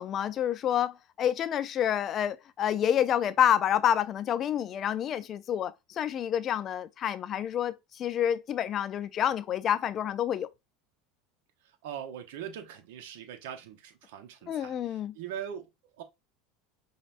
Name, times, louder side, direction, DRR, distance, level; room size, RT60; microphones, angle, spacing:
voice 1, 0.0-10.5 14.5-15.1, left 10 dB, 40° left, 0.4 m, -28 dB
voice 2, 11.8-15.7 16.0-16.1, right 9 dB, 75° right, 0.8 m, -41 dB
5.3 x 2.2 x 2.5 m
hypercardioid pair, 95°, 0 cm